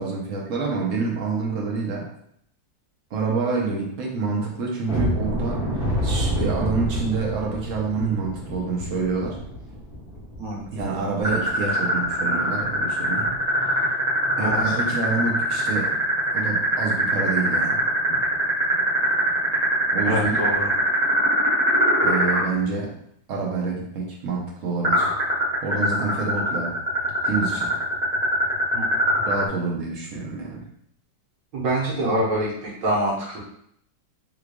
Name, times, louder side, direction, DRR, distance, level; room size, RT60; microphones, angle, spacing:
voice 1, 0.0-2.1 3.1-9.4 10.7-13.3 13.7-13.8 14.4-16.0 16.3-17.9 19.9-20.4 22.0-22.9 23.3-25.1 25.6-26.8 27.2-27.7 29.3-30.6, right 4 dB, 60° right, -2 dB, 0.9 m, -27 dB
sound 1, 4.9-11.6 12.0-12.1 12.5-12.7 13.2-13.4, equal, 5° right, 0.6 m, -29 dB
sound 2, 11.2-22.4 24.8-29.5, right 1 dB, 30° right, 1.0 m, -22 dB
voice 2, 14.4-14.8 20.0-20.7 28.7-28.8 31.5-33.4, right 1 dB, 85° right, -4 dB, 1.8 m, -25 dB
3.6 x 3.2 x 2.3 m, 0.69 s
omnidirectional pair, 1.9 m